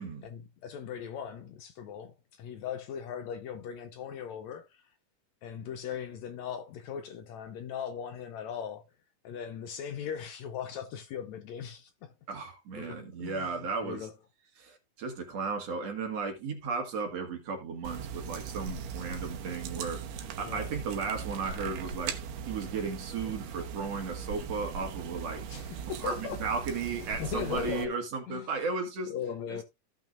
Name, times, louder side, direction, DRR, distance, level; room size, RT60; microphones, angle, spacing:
voice 1, 0.2-4.8 5.4-8.8 9.2-12.1 12.8-14.1 20.4-20.7 25.5-26.5 27.2-27.9 28.3-28.5 29.1-29.6, left 8 dB, 75° left, 1.8 m, -39 dB
voice 2, 12.3-14.1 14.6-22.2 22.5-25.4 26.0-29.1 29.5-29.6, right 4 dB, 55° right, 2.7 m, -35 dB
sound 1, 17.8-27.8, right 6 dB, 85° right, 2.6 m, -39 dB
15.5 x 5.8 x 2.5 m
omnidirectional pair, 3.7 m